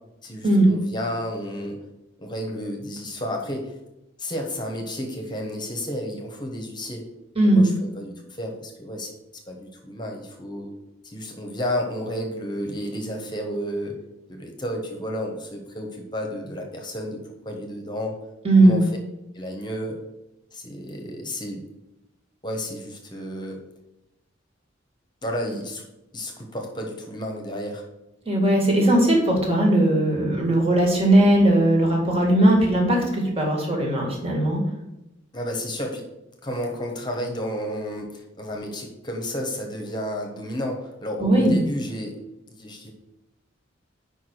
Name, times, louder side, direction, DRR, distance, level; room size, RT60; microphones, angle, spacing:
voice 1, 0.2-1.8 2.2-3.7 4.2-7.0 7.4-7.7 8.0-9.1 9.5-10.7 11.0-13.9 14.3-18.1 18.6-18.9 19.3-20.0 20.5-21.6 22.4-23.6 25.2-25.8 26.1-27.8 35.3-36.0 36.4-42.2 42.5-42.9, equal, 25° left, 2 dB, 1.1 m, -31 dB
voice 2, 7.4-7.7 18.4-18.8 28.3-34.6 41.2-41.6, right 1 dB, 30° right, -1 dB, 2.0 m, -18 dB
5.2 x 4.7 x 6.2 m, 0.93 s
head